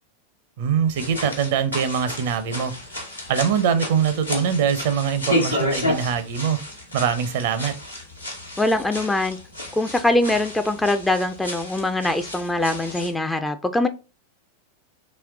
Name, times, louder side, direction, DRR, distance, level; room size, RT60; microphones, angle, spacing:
voice 1, 0.6-2.7 3.3-6.6 6.9-7.7, right 7 dB, 50° right, 0.5 m, -23 dB
sound 1, 0.9-13.1, left 1 dB, 85° left, 1.0 m, -31 dB
voice 2, 8.6-9.4 9.8-13.9, left 2 dB, 10° left, 0.3 m, -22 dB
3.1 x 3.1 x 3.6 m
figure-of-eight pair, 90°, 0 cm